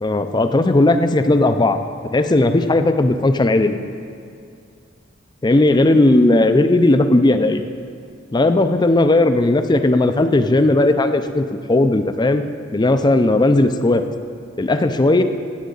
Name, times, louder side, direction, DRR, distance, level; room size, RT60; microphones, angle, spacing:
voice 1, 0.0-1.8 2.1-3.8 5.4-7.7 8.3-12.4 12.7-14.0 14.6-15.2, left 2 dB, 20° left, 8 dB, 0.5 m, -16 dB
14.5 x 8.2 x 3.9 m, 2.5 s
head